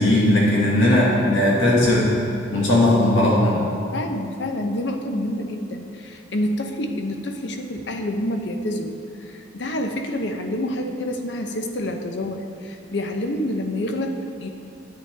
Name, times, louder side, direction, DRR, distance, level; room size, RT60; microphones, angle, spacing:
voice 1, 0.0-2.1 2.5-3.6, left 1 dB, 90° left, -5 dB, 1.9 m, -17 dB
voice 2, 3.9-14.5, left 1 dB, 60° left, 5 dB, 0.7 m, -28 dB
10.5 x 8.2 x 3.3 m, 2.4 s
head